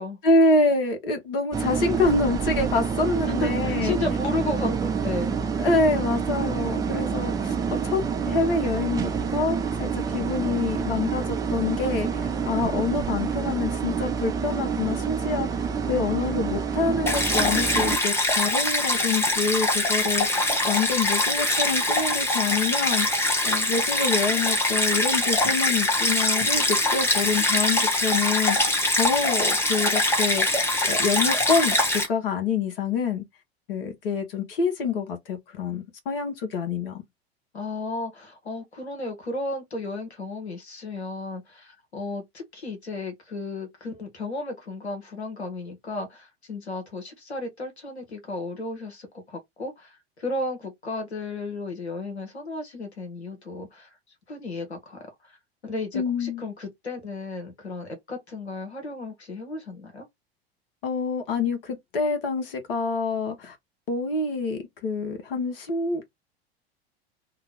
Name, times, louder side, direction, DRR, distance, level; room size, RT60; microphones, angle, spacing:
voice 1, 0.2-4.0 5.6-7.6 7.8-30.5 30.9-33.2 33.7-37.0 55.9-56.4 60.8-63.6 63.9-66.0, left 4 dB, 60° left, 0.9 m, -26 dB
sound 1, 1.5-18.0, right 6 dB, 10° right, 0.3 m, -27 dB
voice 2, 3.2-5.4 37.5-54.0 54.3-55.4 55.6-60.1, left 2 dB, 85° left, 0.9 m, -34 dB
Stream, 17.1-32.1, left 1 dB, 10° left, 0.9 m, -23 dB
2.8 x 2.0 x 3.5 m
figure-of-eight pair, 80°, 32 cm